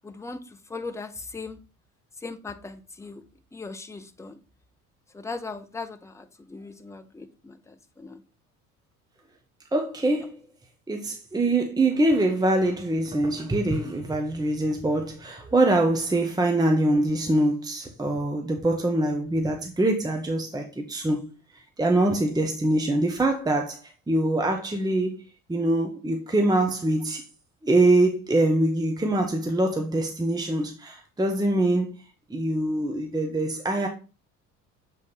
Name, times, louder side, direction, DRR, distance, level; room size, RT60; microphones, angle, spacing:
voice 1, 0.0-0.4 0.7-1.6 2.2-3.2 3.5-4.4 5.1-8.2, left 3 dB, 5° left, 0.7 m, -38 dB
voice 2, 9.7-10.4 10.9-21.3 21.8-25.2 25.5-27.2 27.6-31.9 32.3-33.9, right 1 dB, 10° right, 1.1 m, -24 dB
7.1 x 4.2 x 3.9 m
figure-of-eight pair, 60°, 42 cm